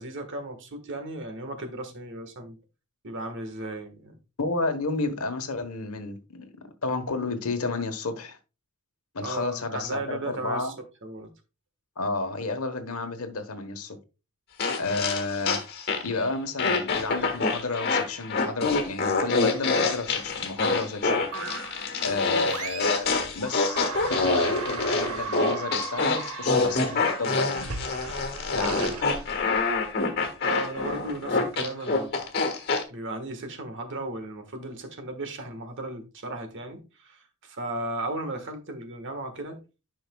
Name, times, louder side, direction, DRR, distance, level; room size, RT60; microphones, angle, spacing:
voice 1, 0.0-2.6 3.0-4.1 9.2-10.7 11.0-11.3 14.9-15.0 30.4-32.1 32.9-39.6, right 2 dB, 55° right, 1.4 m, -35 dB
voice 2, 4.4-6.5 6.8-8.4 9.1-10.7 12.0-14.0 14.8-15.6 16.0-21.1 22.0-23.8 24.1-27.8 28.5-29.0, left 3 dB, 70° left, 1.1 m, -31 dB
sound 1, 14.6-16.2 16.6-32.8, left 3 dB, 45° left, 1.4 m, -26 dB
sound 2, 21.3-21.9 22.5-23.1 23.4-29.8, right 5 dB, 85° right, 1.1 m, -37 dB
10.5 x 5.7 x 2.3 m
head